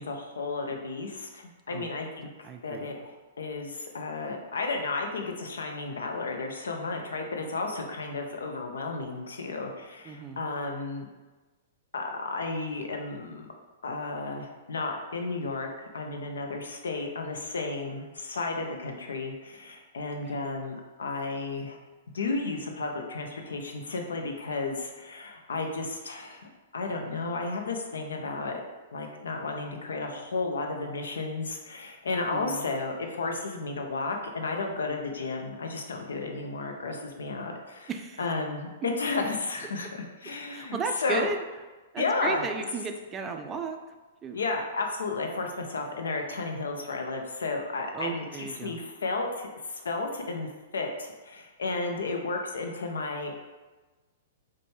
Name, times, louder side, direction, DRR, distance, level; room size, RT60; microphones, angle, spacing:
voice 1, 0.0-2.3 2.6-3.1 3.4-11.1 11.9-13.5 13.8-15.7 15.9-21.8 22.1-28.6 28.9-37.9 38.2-39.9 40.2-41.3 42.0-42.4 44.3-53.4, left 3 dB, 80° left, 3 dB, 0.5 m, -33 dB
voice 2, 2.4-2.9 10.1-10.4 20.2-20.4 32.3-32.6 37.9-38.2 40.5-41.4 41.9-43.8 44.2-44.4 47.9-48.8, right 5 dB, 25° right, 5 dB, 0.3 m, -35 dB
4.1 x 2.2 x 3.2 m, 1.2 s
hypercardioid pair, 120°, 0 cm